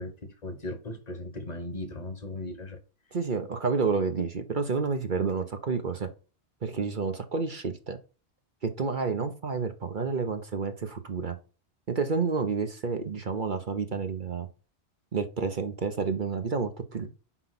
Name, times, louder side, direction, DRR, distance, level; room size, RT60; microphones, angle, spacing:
voice 1, 0.0-2.8, left 1 dB, 40° left, 1.4 m, -37 dB
voice 2, 3.1-6.1 6.6-8.0 8.6-11.4 11.9-14.5 15.1-17.1, right 5 dB, 50° right, 1.0 m, -29 dB
6.0 x 5.2 x 5.9 m
omnidirectional pair, 1.1 m